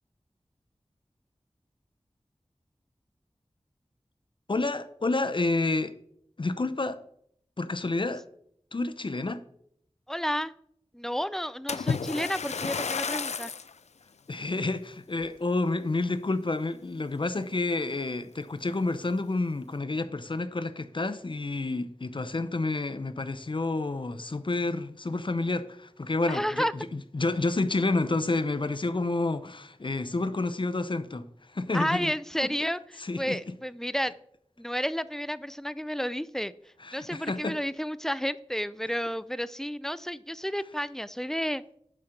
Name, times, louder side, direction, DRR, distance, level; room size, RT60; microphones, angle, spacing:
voice 1, 4.5-5.9 6.4-7.0 7.6-8.2 8.7-9.4 14.3-32.1 32.4-32.5 33.0-33.4 36.8-37.6, left 2 dB, 50° left, 0.6 m, -29 dB
voice 2, 10.1-10.5 10.9-13.5 26.3-26.7 31.7-32.8 33.2-34.1 34.6-36.5 36.9-41.6, equal, 5° left, 0.4 m, -31 dB
Splash splatter, 11.7-13.7 14.4-14.6 15.2-15.3, left 5 dB, 90° left, 0.4 m, -31 dB
11.0 x 4.4 x 5.1 m
wide cardioid pair, 60°, 11 cm